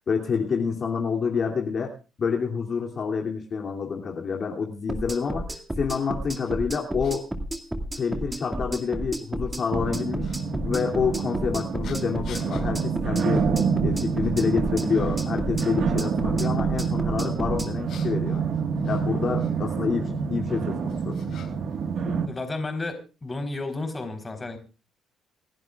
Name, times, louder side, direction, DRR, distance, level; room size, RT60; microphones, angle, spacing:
voice 1, 0.1-7.3 8.0-10.3 10.6-13.4 13.8-18.4 18.8-21.2, left 5 dB, 50° left, 1 dB, 2.8 m, -28 dB
sound 1, 4.9-17.7, right 1 dB, 10° right, 2.2 m, -32 dB
sound 2, 6.4-6.5 7.0-7.2 8.1-8.2 10.2-10.4 11.8-12.7 13.3-13.5 13.9-14.4 14.9-15.4 17.6-19.5 20.5-21.8 22.0-22.9, left 7 dB, 70° left, 5.5 m, -48 dB
sound 3, 9.7-22.3, right 6 dB, 65° right, 1.6 m, -27 dB
voice 2, 22.3-24.6, left 2 dB, 25° left, 6 dB, 4.0 m, -32 dB
28.0 x 11.0 x 2.4 m, 0.33 s
cardioid pair, 90°, 0 cm